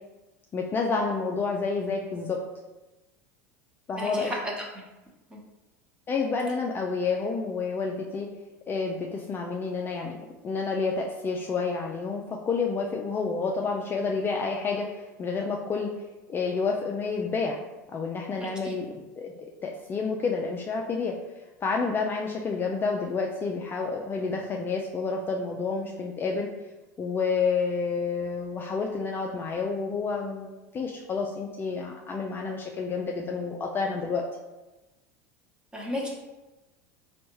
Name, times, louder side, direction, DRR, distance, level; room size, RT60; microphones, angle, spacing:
voice 1, 0.5-2.4 3.9-4.3 6.1-8.3 8.7-10.2 10.4-15.9 16.3-17.6 17.9-19.3 19.6-21.2 21.6-26.5 27.0-30.5 30.7-34.2, left 4 dB, 25° left, 0 dB, 0.4 m, -29 dB
voice 2, 4.0-4.7 5.3-5.4 18.4-18.8 35.7-36.1, left 1 dB, 10° right, -2 dB, 1.0 m, -33 dB
4.2 x 2.3 x 3.0 m, 1.1 s
hypercardioid pair, 95°, 8 cm